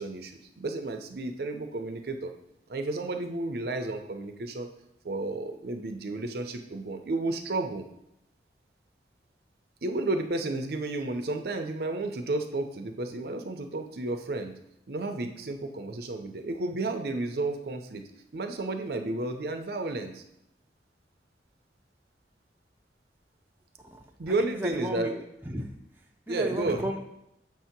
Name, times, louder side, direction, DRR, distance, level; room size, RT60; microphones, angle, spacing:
voice 1, 0.0-2.3 2.7-4.7 5.0-7.8 9.8-14.5 14.9-18.0 18.3-20.2 24.2-25.1 26.3-26.9, right 2 dB, 60° right, 6 dB, 0.5 m, -32 dB
voice 2, 24.4-25.7 26.3-27.0, right 1 dB, 10° right, 1 dB, 0.5 m, -34 dB
7.0 x 2.8 x 5.8 m, 0.80 s
head